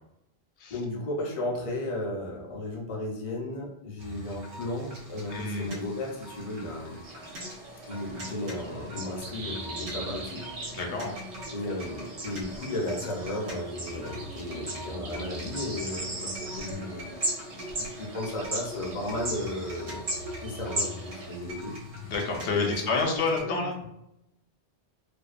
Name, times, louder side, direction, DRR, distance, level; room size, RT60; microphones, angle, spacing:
voice 1, 0.7-7.0 7.9-10.8 11.5-17.2 17.7-20.0 20.4-21.7 22.0-22.1 22.6-23.6, left 1 dB, 40° left, -2 dB, 0.5 m, -35 dB
sound 1, 4.0-23.4, equal, 85° right, 1.0 m, -43 dB
voice 2, 5.3-5.7 10.7-11.2 22.0-23.8, left 3 dB, 80° left, 1 dB, 0.9 m, -28 dB
sound 2, 7.0-21.4, right 1 dB, 45° right, 0.5 m, -38 dB
2.6 x 2.1 x 2.4 m, 0.82 s
omnidirectional pair, 1.1 m